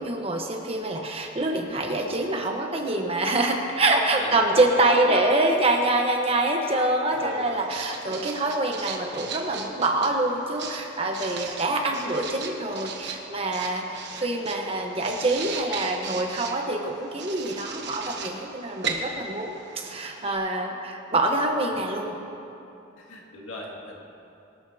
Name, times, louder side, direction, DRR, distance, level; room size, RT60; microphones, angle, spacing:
voice 1, 0.0-22.2, right 2 dB, 30° right, 2 dB, 1.1 m, -25 dB
voice 2, 4.1-5.2 7.2-7.6 11.8-12.3 21.7-21.8 23.0-23.9, left 1 dB, 80° left, -2 dB, 2.3 m, -37 dB
Writing, 7.1-20.4, right 5 dB, 60° right, 1.2 m, -37 dB
22.0 x 12.5 x 2.8 m, 2.8 s
head